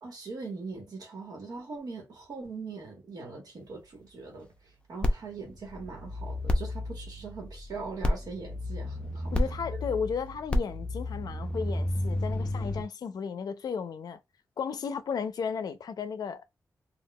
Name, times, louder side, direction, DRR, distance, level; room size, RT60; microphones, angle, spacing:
voice 1, 0.0-4.5 4.9-9.3, right 4 dB, 75° right, 1.3 m, -41 dB
sound 1, 5.0-12.8, left 1 dB, 15° left, 0.5 m, -31 dB
voice 2, 9.3-14.2 14.6-16.4, left 6 dB, 80° left, 0.4 m, -34 dB
3.6 x 2.3 x 2.3 m
wide cardioid pair, 140°, 7 cm